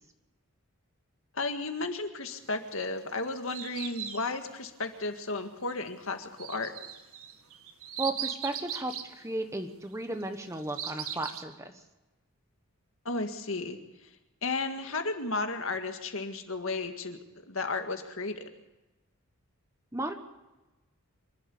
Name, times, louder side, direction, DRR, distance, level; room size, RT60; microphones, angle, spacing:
voice 1, 1.3-6.7 13.1-13.8 14.4-17.2 17.5-18.4, left 3 dB, 65° left, 6 dB, 1.9 m, -33 dB
sound 1, 2.8-4.4 6.4-9.1 10.2-11.4, right 9 dB, 75° right, 1.7 m, -38 dB
voice 2, 8.0-11.7 19.9-20.1, right 2 dB, 15° right, 7 dB, 1.2 m, -34 dB
25.5 x 12.0 x 8.6 m, 1.0 s
head